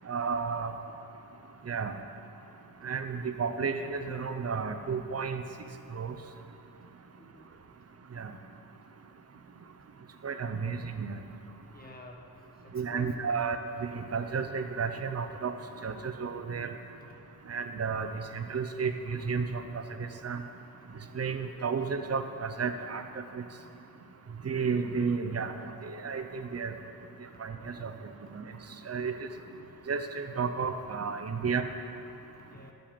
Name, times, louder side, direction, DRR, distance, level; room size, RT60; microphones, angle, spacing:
voice 1, 0.1-0.7 1.7-2.0 2.8-5.4 5.9-6.1 8.2-8.3 10.2-11.2 12.7-15.5 15.8-16.7 17.5-20.4 21.1-23.4 24.4-25.5 25.8-26.7 27.4-27.9 28.3-28.4 28.9-29.1 29.9-31.6, right 5 dB, 45° right, 8 dB, 0.7 m, -32 dB
voice 2, 7.2-7.5 11.7-12.3 12.6-13.3 17.3-17.4 26.3-26.4 32.4-32.7, left 2 dB, 25° left, 1 dB, 1.1 m, -50 dB
11.0 x 7.7 x 5.2 m, 2.7 s
wide cardioid pair, 115°, 36 cm